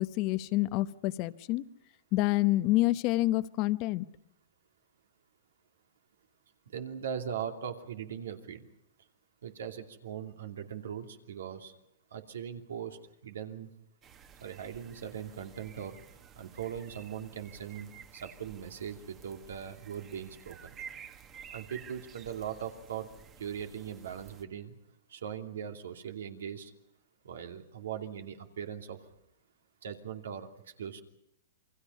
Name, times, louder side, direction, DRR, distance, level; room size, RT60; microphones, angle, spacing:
voice 1, 0.0-1.6 2.1-4.1, left 18 dB, 40° left, 14 dB, 0.8 m, -28 dB
voice 2, 6.7-8.6 9.4-11.7 12.1-13.0 13.2-13.7 14.4-16.0 16.4-20.7 21.5-23.1 23.4-24.7 25.1-26.7 27.2-29.0 29.8-30.5 30.8-31.0, right 8 dB, 85° right, 5 dB, 2.7 m, -40 dB
sound 1, 14.0-24.4, right 7 dB, 25° right, 1.4 m, -52 dB
28.5 x 22.5 x 5.5 m, 0.78 s
hypercardioid pair, 145°, 0 cm